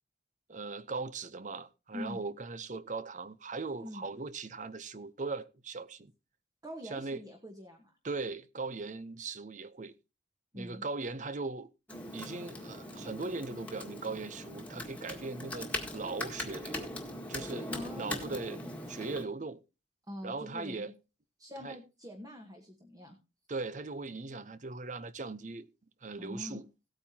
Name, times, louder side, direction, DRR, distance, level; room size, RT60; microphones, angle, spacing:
voice 1, 0.5-6.1 6.8-7.2 8.0-9.9 10.5-11.7 12.1-16.9 17.3-17.7 18.0-18.6 18.9-19.6 20.2-20.9 21.6-21.8 23.5-25.7 26.0-26.7, right 3 dB, 40° right, 0.7 m, -39 dB
voice 2, 6.6-7.9 10.5-10.8 17.7-18.4 20.1-20.9 21.4-23.2 26.2-26.6, left 1 dB, 20° right, 1.3 m, -44 dB
Computer keyboard, 11.9-19.2, left 1 dB, 10° left, 1.8 m, -41 dB
17.0 x 8.9 x 2.8 m
head